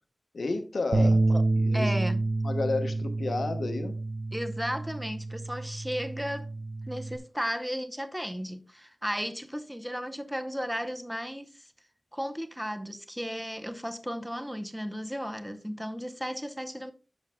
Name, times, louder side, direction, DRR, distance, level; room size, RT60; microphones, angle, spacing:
voice 1, 0.3-1.2 1.5-1.9 2.4-4.0, left 3 dB, 75° left, 1.1 m, -31 dB
Bass guitar, 0.9-7.2, right 2 dB, 65° right, 0.7 m, -28 dB
voice 2, 1.0-1.4 1.7-2.3 4.3-6.5 6.9-11.6 12.1-16.9, equal, 5° right, 0.7 m, -34 dB
10.5 x 6.2 x 2.2 m
wide cardioid pair, 80°, 0 cm